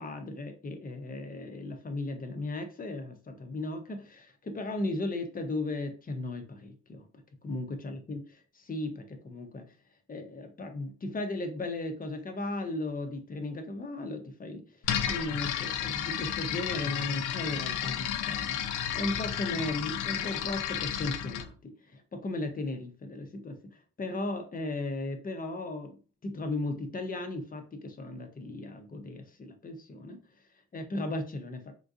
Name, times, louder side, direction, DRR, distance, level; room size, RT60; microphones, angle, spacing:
voice 1, 0.0-7.1 7.4-9.7 10.1-14.8 15.1-30.2 30.7-31.7, left 2 dB, 30° left, 0.7 m, -36 dB
sound 1, 14.8-21.5, left 9 dB, 90° left, 0.5 m, -32 dB
3.7 x 2.5 x 2.5 m
cardioid pair, 90°, 30 cm